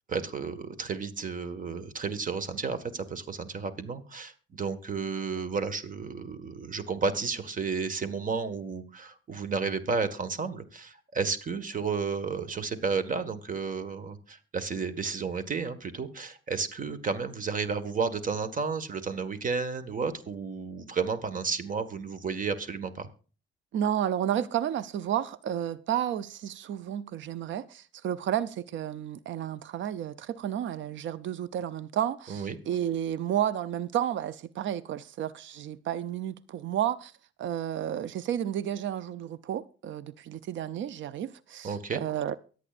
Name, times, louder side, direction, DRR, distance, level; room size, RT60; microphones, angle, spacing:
voice 1, 0.1-23.1 32.3-32.6 41.6-42.0, right 5 dB, 40° right, 1.6 m, -32 dB
voice 2, 23.7-37.1 37.4-42.4, right 10 dB, 70° right, 0.6 m, -31 dB
23.5 x 8.4 x 2.5 m
cardioid pair, 90°, 20 cm